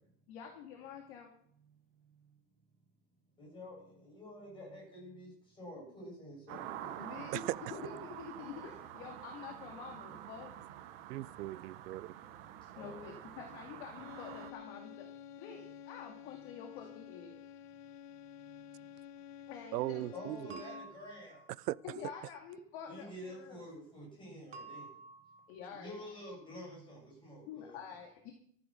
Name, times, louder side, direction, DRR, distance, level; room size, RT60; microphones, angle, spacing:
voice 1, 0.3-1.3 7.0-7.4 7.7-10.5 12.8-15.1 15.4-17.3 19.5-20.1 21.8-23.6 25.5-26.0 27.5-28.3, left 7 dB, 40° left, 2.4 m, -47 dB
voice 2, 3.4-7.0 12.7-13.2 19.8-21.4 22.9-24.9 25.7-27.8, left 1 dB, 10° left, 8.0 m, -49 dB
sound 1, 6.5-14.5, right 11 dB, 35° right, 1.3 m, -47 dB
voice 3, 11.1-12.1 19.7-20.6 21.7-21.8, right 17 dB, 70° right, 0.7 m, -38 dB
sound 2, 13.9-21.1, left 9 dB, 70° left, 1.0 m, -51 dB
sound 3, 20.5-21.8 24.5-25.7, right 3 dB, 15° right, 1.2 m, -51 dB
14.0 x 10.0 x 6.5 m
supercardioid pair, 175°, 49 cm